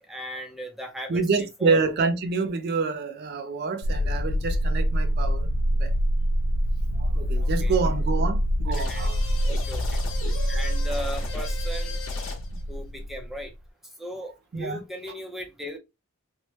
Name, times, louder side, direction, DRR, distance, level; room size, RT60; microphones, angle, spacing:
voice 1, 0.0-1.2 1.6-1.8 7.4-7.7 8.8-9.1 9.4-10.0 10.5-12.0 12.7-13.5 14.0-15.8, equal, ahead, 0.6 m, -37 dB
voice 2, 1.1-5.5 5.8-5.9 6.9-9.2 14.5-14.8, right 4 dB, 50° right, 0.4 m, -27 dB
sound 1, 3.8-13.4, equal, 85° left, 0.4 m, -25 dB
sound 2, 8.7-12.6, left 4 dB, 65° left, 0.9 m, -38 dB
3.1 x 2.1 x 2.8 m
head